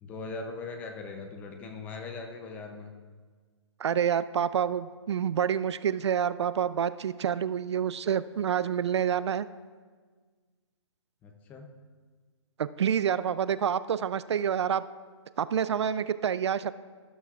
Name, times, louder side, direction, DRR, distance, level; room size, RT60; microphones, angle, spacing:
voice 1, 0.0-2.9 11.2-11.7, left 3 dB, 10° left, 4 dB, 0.5 m, -40 dB
voice 2, 3.8-9.5 12.6-14.8 15.4-16.7, right 8 dB, 60° right, 15 dB, 0.4 m, -28 dB
12.5 x 12.5 x 2.4 m, 1.5 s
hypercardioid pair, 160°, 16 cm